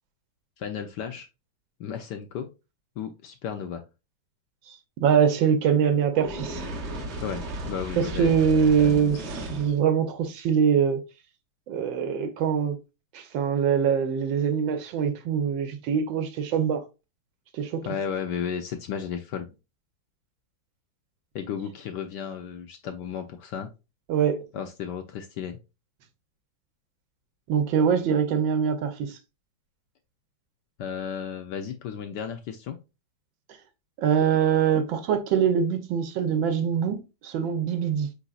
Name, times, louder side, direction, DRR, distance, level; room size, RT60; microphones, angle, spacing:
voice 1, 0.6-1.3 1.8-2.5 3.0-3.8 7.2-8.5 8.8-9.1 17.8-19.5 21.3-23.7 24.5-25.6 30.8-32.8, left 7 dB, 70° left, 1.1 m, -34 dB
voice 2, 4.7-6.6 8.0-11.0 11.7-12.8 13.1-16.9 17.5-17.8 24.1-24.4 27.5-29.2 34.0-38.1, right 7 dB, 75° right, 1.4 m, -23 dB
Fire, 6.1-9.8, right 1 dB, 45° right, 0.9 m, -35 dB
4.7 x 4.0 x 2.3 m
omnidirectional pair, 2.2 m